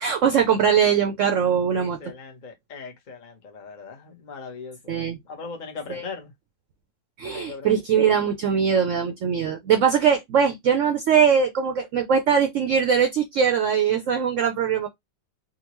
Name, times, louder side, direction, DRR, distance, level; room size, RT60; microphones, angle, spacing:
voice 1, 0.0-2.0 4.9-5.2 5.9-6.0 7.2-14.9, right 7 dB, 65° right, 0.8 m, -21 dB
voice 2, 1.7-4.9 5.2-6.3 7.2-7.7, left 4 dB, 40° left, 0.7 m, -39 dB
3.8 x 2.2 x 3.0 m
omnidirectional pair, 1.8 m